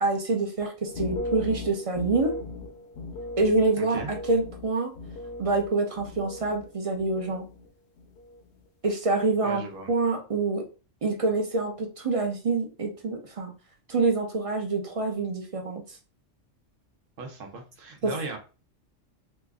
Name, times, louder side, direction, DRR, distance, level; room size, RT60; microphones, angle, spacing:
voice 1, 0.0-2.4 3.4-4.9 5.4-7.5 8.8-10.6 11.0-13.5 13.9-16.0 18.0-18.1, right 3 dB, 40° right, 3 dB, 0.5 m, -26 dB
sound 1, 0.8-6.7 7.0-7.7 8.0-8.4, left 2 dB, 65° left, 0.9 m, -38 dB
voice 2, 3.8-4.1 9.4-9.9 17.2-18.4, right 3 dB, 90° right, 3 dB, 1.2 m, -37 dB
3.0 x 2.4 x 3.5 m, 0.33 s
omnidirectional pair, 1.3 m